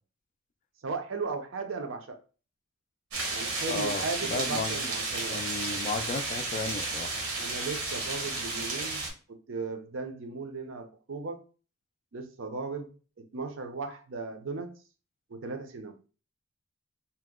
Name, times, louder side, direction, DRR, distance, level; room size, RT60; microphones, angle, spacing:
voice 1, 0.8-2.2 3.3-5.4 7.4-9.0 9.3-11.4 12.1-12.9 13.2-14.7 15.3-16.0, right 4 dB, 65° right, 0.5 m, -36 dB
sound 1, 3.1-9.1, right 3 dB, 90° right, 1.0 m, -33 dB
voice 2, 3.7-4.8 5.3-7.1, left 3 dB, 35° left, 0.3 m, -34 dB
2.8 x 2.0 x 3.5 m
head